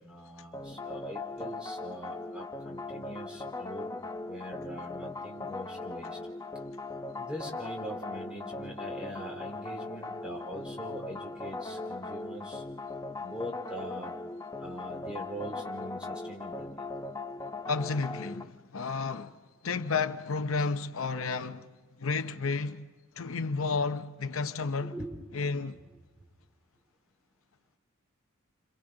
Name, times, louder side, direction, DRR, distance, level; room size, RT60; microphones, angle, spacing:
voice 1, 0.0-3.9 4.3-6.2 7.2-12.6 13.2-14.2 14.6-16.9 24.8-25.1, right 1 dB, 5° right, 3.6 m, -42 dB
sound 1, 0.5-18.4, left 3 dB, 15° left, 0.8 m, -39 dB
voice 2, 17.7-21.7 22.0-22.8 23.2-24.9 25.3-25.8, left 4 dB, 75° left, 0.8 m, -32 dB
29.5 x 26.5 x 3.9 m
head